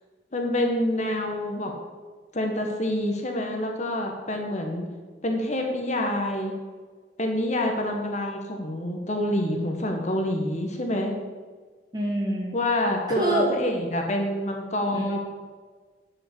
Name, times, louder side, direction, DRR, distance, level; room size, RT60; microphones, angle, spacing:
voice 1, 0.3-1.7 2.3-4.9 5.2-6.5 7.2-11.1 12.5-15.2, left 1 dB, 40° left, 2 dB, 1.4 m, -27 dB
voice 2, 11.9-12.5 13.1-13.5 14.9-15.2, right 1 dB, 25° right, -2 dB, 2.5 m, -26 dB
8.4 x 7.5 x 8.1 m, 1.5 s
head